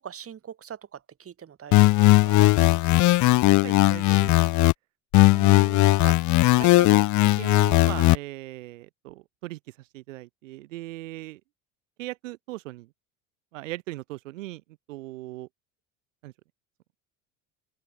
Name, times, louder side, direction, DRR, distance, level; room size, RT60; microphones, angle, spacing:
voice 1, 0.0-2.5, right 8 dB, 35° right, 6.1 m, -42 dB
sound 1, 1.7-4.7 5.1-8.2, left 18 dB, 50° left, 0.8 m, -18 dB
voice 2, 3.4-4.3 5.3-6.2 6.6-11.4 12.0-12.9 13.5-14.6 14.9-15.5 16.2-16.3, right 18 dB, 90° right, 2.2 m, -39 dB
open air
supercardioid pair, 90°, 37 cm